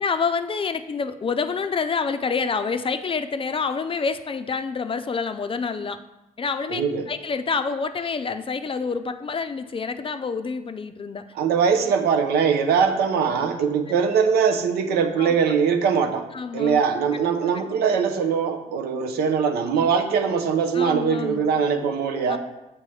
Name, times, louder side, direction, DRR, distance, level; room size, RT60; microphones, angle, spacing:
voice 1, 0.0-6.0 6.4-11.2 15.2-15.3 16.3-16.8 20.7-21.5 22.3-22.4, left 5 dB, 35° left, 9 dB, 0.4 m, -27 dB
voice 2, 6.7-7.1 11.3-16.2 16.5-22.4, right 6 dB, 85° right, 6 dB, 0.7 m, -21 dB
6.8 x 4.4 x 3.2 m, 0.97 s
supercardioid pair, 65°, 16 cm